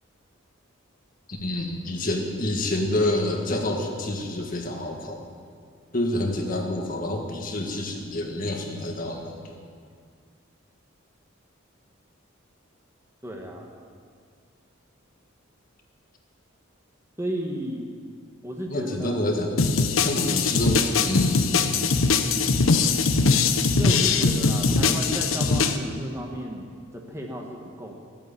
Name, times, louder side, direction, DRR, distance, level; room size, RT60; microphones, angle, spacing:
voice 1, 1.3-5.2 5.9-9.6 18.7-21.7 24.7-24.8, left 1 dB, 45° left, 1 dB, 1.7 m, -28 dB
voice 2, 13.2-13.7 17.2-17.9 18.4-19.2 23.8-26.7 26.9-27.9, equal, 15° right, 0 dB, 1.4 m, -33 dB
sound 1, 19.6-25.8, left 4 dB, 90° left, 0.9 m, -21 dB
14.0 x 9.1 x 8.6 m, 2.1 s
head